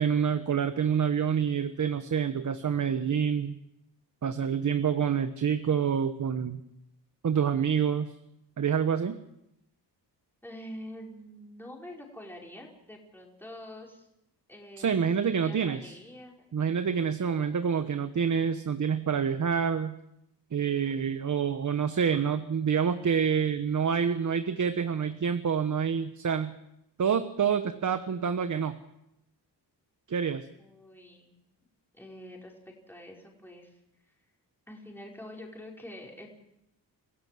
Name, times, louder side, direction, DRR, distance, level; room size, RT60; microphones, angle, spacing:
voice 1, 0.0-3.6 4.2-6.6 7.2-8.1 8.6-9.2 14.8-15.9 16.5-20.0 20.5-26.6 27.0-28.8 30.1-30.5, right 7 dB, 45° right, 9 dB, 1.2 m, -27 dB
voice 2, 10.4-14.1 14.5-16.5 30.6-31.3 31.9-34.1 34.7-36.3, left 1 dB, 5° left, -1 dB, 4.9 m, -46 dB
27.0 x 15.5 x 7.6 m, 0.83 s
cardioid pair, 105°, 43 cm